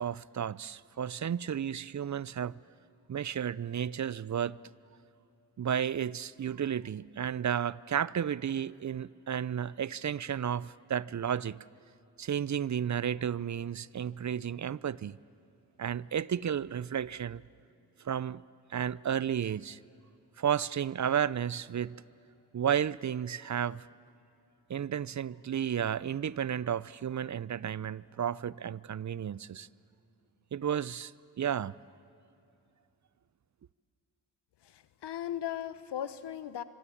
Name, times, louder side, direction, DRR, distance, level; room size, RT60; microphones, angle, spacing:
voice 1, 0.0-2.5 3.1-4.6 5.6-11.6 12.2-15.2 15.8-17.4 18.0-18.4 18.7-19.8 20.4-21.9 22.5-23.9 24.7-29.7 30.5-31.1 31.4-31.7, right 9 dB, 45° right, 0.6 m, -32 dB
voice 2, 34.6-36.6, left 10 dB, 85° left, 1.1 m, -37 dB
25.0 x 24.5 x 8.6 m
cardioid pair, 50°, 40 cm